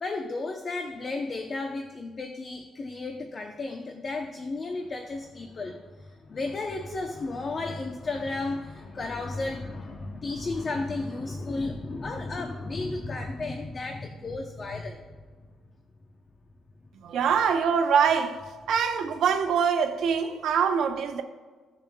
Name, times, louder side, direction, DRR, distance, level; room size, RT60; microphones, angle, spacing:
voice 1, 0.0-15.0, left 3 dB, 35° left, 0.7 m, -33 dB
voice 2, 17.0-18.4 18.7-21.2, right 7 dB, 75° right, 0.9 m, -24 dB
16.0 x 7.0 x 2.3 m
cardioid pair, 120°, 0 cm